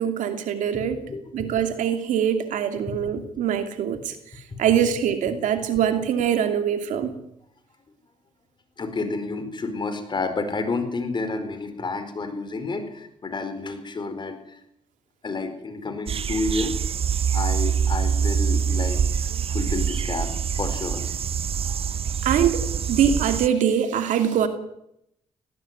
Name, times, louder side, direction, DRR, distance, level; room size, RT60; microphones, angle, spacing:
voice 1, 0.0-1.0 1.3-4.2 4.6-7.2 22.2-24.5, right 9 dB, 90° right, 7 dB, 2.7 m, -23 dB
voice 2, 0.7-1.5 2.9-3.0 4.5-4.6 8.8-14.6 15.2-16.8 17.3-21.0 21.6-21.8, left 3 dB, 35° left, 9 dB, 4.5 m, -30 dB
sound 1, 16.1-23.5, right 7 dB, 50° right, 0.7 m, -25 dB
18.0 x 17.5 x 9.6 m, 0.79 s
cardioid pair, 95°, 13 cm